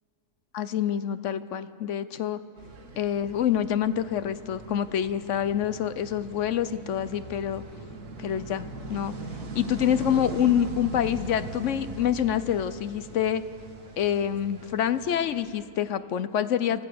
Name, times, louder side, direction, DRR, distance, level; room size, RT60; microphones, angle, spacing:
voice 1, 0.5-2.4 3.0-7.6 8.2-9.1 9.5-13.4 14.0-16.8, left 9 dB, 60° left, 13 dB, 0.9 m, -26 dB
sound 1, 2.6-15.6, right 2 dB, 85° right, 2.0 m, -41 dB
28.5 x 14.5 x 6.8 m, 2.5 s
omnidirectional pair, 1.6 m